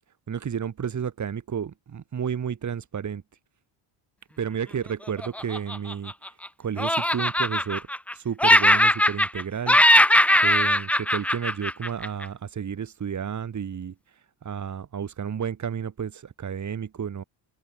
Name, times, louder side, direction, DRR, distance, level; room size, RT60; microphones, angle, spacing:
voice 1, 0.3-3.2 4.4-7.9 8.1-9.8 10.3-17.2, right 7 dB, 35° right, 7.3 m, -32 dB
Laughter, 5.2-6.5 6.8-8.1 8.4-9.4 9.7-12.3, left 1 dB, 5° left, 1.1 m, -20 dB
open air
cardioid pair, 165°, 48 cm